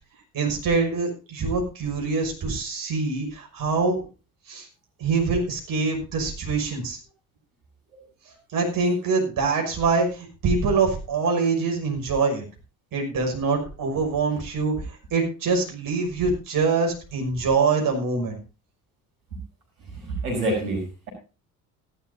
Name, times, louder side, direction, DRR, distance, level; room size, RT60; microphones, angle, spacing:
voice 1, 0.3-4.0 4.5-4.7 5.0-7.0 8.5-12.4 12.9-18.4, right 4 dB, 50° right, 1 dB, 6.2 m, -24 dB
voice 2, 20.0-21.1, right 1 dB, 80° right, 0 dB, 5.6 m, -27 dB
17.5 x 12.5 x 2.7 m, 0.32 s
figure-of-eight pair, 55°, 44 cm